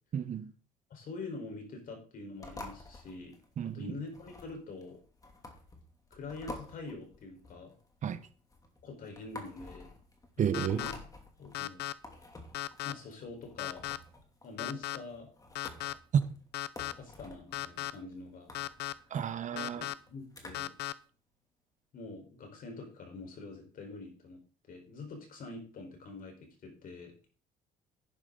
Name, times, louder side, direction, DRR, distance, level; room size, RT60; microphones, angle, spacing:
voice 1, 0.1-0.5 3.6-3.9 8.0-8.2 10.4-10.8 19.1-19.9, right 8 dB, 45° right, 1.0 m, -32 dB
voice 2, 0.9-3.4 3.7-5.0 6.1-7.7 8.8-9.9 10.6-10.9 11.4-11.8 12.8-13.9 14.4-15.3 16.9-18.5 19.5-19.6 20.1-20.7 21.9-24.4 24.7-27.2, left 3 dB, 55° left, 4.6 m, -45 dB
sound 1, 2.4-20.8, left 2 dB, 20° left, 2.7 m, -50 dB
sound 2, 10.5-10.9 11.5-11.9 12.5-12.9 13.6-14.0 14.6-15.0 15.5-15.9 16.5-16.9 17.5-17.9 18.5-18.9 19.6-19.9 20.5-20.9, left 16 dB, 75° left, 0.7 m, -36 dB
10.5 x 10.0 x 4.0 m
cardioid pair, 110°, 17 cm